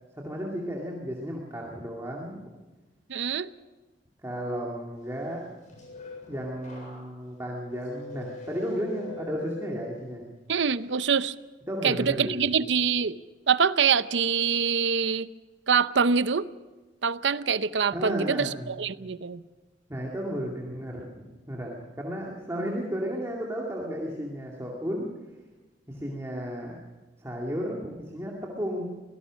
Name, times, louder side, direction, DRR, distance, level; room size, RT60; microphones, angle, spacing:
voice 1, 0.2-2.5 4.2-5.4 6.3-10.2 11.7-12.4 17.9-18.8 19.9-21.1 21.5-25.1 25.9-26.8 27.2-29.0, equal, 15° right, -2 dB, 2.3 m, -33 dB
voice 2, 3.1-3.5 10.5-11.3 11.8-13.2 13.5-15.3 15.7-16.5 17.0-19.4, right 6 dB, 75° right, 15 dB, 0.7 m, -25 dB
sound 1, 5.3-10.4 10.8-11.2, left 2 dB, 45° left, 7.6 m, -44 dB
24.5 x 17.5 x 6.3 m, 1.2 s
head